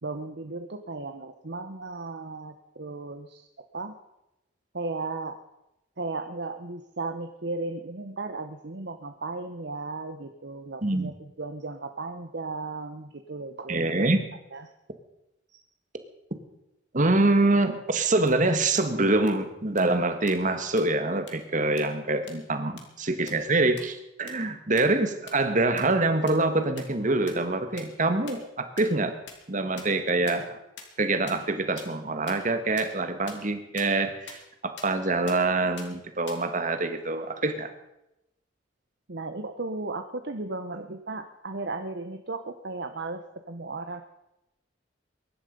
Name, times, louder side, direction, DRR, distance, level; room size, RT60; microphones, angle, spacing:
voice 1, 0.0-3.5 3.7-3.9 4.7-5.4 6.0-13.9 14.5-14.7 15.5-15.6 39.1-44.0, right 3 dB, 60° right, 7 dB, 1.0 m, -35 dB
voice 2, 10.8-11.1 13.7-14.2 16.9-29.1 29.5-30.6 31.0-37.7, right 2 dB, 40° right, 8 dB, 1.7 m, -25 dB
sound 1, 18.3-18.4 18.8-18.9 19.3-19.4 19.8-19.9 20.3-20.4 20.8-20.9 21.3-21.4 21.8-21.9 22.3-22.4 22.8-22.9 23.3-23.4 23.8-23.9 24.3-24.4 24.8-24.9 25.3-25.4 25.8-25.9 26.3-26.4 26.8-26.9 27.3-27.4 27.8-27.9 28.3-28.4 28.8-28.9 29.3-29.4 29.8-29.9 30.3-30.4 30.8-30.9 31.3-31.4 31.8-31.9 32.3-32.4 32.8-32.9 33.3-33.4 33.8-33.9 34.3-34.4 34.8-34.9 35.3-35.4 35.8-35.9 36.3-36.4, left 7 dB, 65° left, 3.0 m, -42 dB
23.0 x 11.5 x 5.3 m, 0.89 s
head